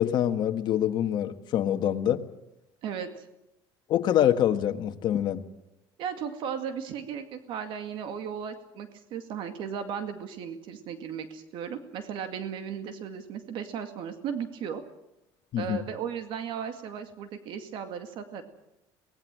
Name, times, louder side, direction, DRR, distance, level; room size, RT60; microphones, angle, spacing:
voice 1, 0.0-2.2 3.9-5.4 15.5-15.9, left 11 dB, 55° left, 1.6 m, -25 dB
voice 2, 2.8-3.3 6.0-14.8 15.6-18.4, right 7 dB, 65° right, 2.2 m, -36 dB
24.0 x 19.5 x 7.6 m
cardioid pair, 130°, 9 cm